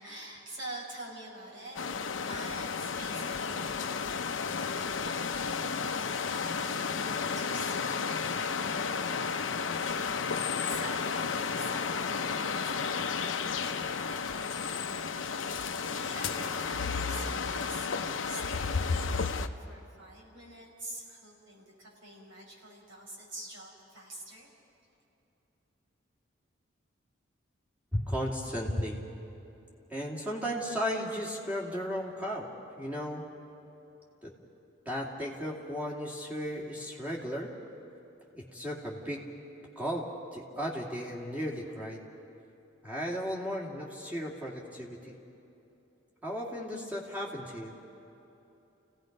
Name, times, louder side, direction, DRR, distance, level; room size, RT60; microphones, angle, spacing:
voice 1, 0.0-4.1 4.6-17.9 18.2-24.5, right 1 dB, 80° right, -3 dB, 6.0 m, -47 dB
sound 1, 1.8-19.5, left 5 dB, 80° left, 0.7 m, -32 dB
voice 2, 27.9-29.0 29.9-32.5 32.8-33.3 34.2-34.3 34.9-37.5 38.3-39.2 39.8-40.1 40.3-42.0 42.8-45.1 46.2-47.7, equal, 10° right, -4 dB, 2.5 m, -35 dB
29.0 x 17.5 x 5.3 m, 3.0 s
head